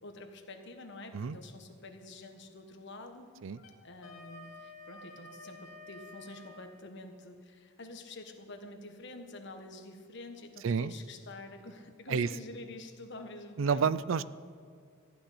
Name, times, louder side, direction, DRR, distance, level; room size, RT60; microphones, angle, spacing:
voice 1, 0.0-3.3 3.8-13.9, left 2 dB, 60° left, 5 dB, 1.4 m, -47 dB
Wind instrument woodwind instrument, 3.6-6.6, left 2 dB, 75° left, 2.6 m, -50 dB
voice 2, 10.6-10.9 12.1-12.3 13.6-14.2, right 6 dB, 65° right, 17 dB, 0.4 m, -29 dB
14.5 x 6.2 x 10.0 m, 2.2 s
head